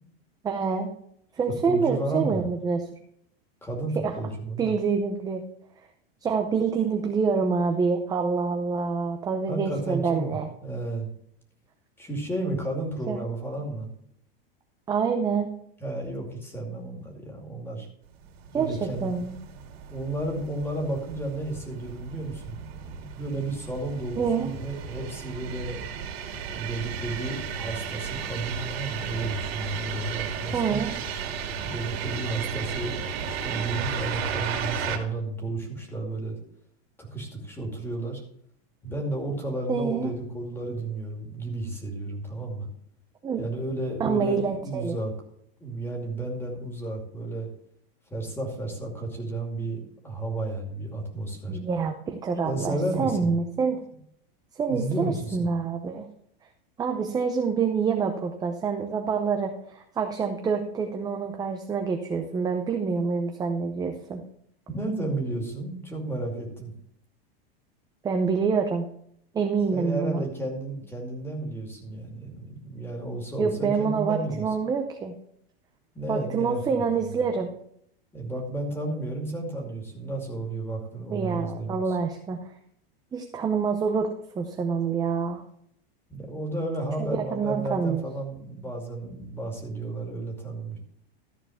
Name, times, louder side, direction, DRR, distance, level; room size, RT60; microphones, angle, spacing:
voice 1, 0.4-0.9 1.3-2.9 4.0-4.1 4.6-5.4 6.2-10.5 13.1-13.2 14.9-15.5 18.5-19.4 24.2-24.5 30.5-31.0 39.7-40.1 43.2-43.4 44.0-45.0 51.5-53.8 54.5-56.1 56.8-64.2 68.0-68.9 69.3-70.2 73.4-75.2 76.1-77.5 81.1-82.5 83.1-85.4 87.0-88.0, right 5 dB, 10° right, 4 dB, 0.6 m, -26 dB
voice 2, 1.7-2.4 3.6-4.7 9.5-11.1 12.0-13.9 15.8-17.9 18.5-19.2 19.9-22.6 23.1-25.8 26.5-30.8 31.6-36.4 37.0-38.2 38.8-42.7 43.4-45.1 45.6-47.5 48.1-51.6 52.5-53.3 54.7-55.4 64.7-66.7 69.7-74.5 75.9-76.8 78.1-82.0 86.1-90.8, right 2 dB, 5° left, 1 dB, 2.5 m, -32 dB
sound 1, 18.2-35.0, right 6 dB, 75° right, 2.5 m, -34 dB
14.0 x 4.6 x 7.2 m, 0.69 s
supercardioid pair, 150°, 31 cm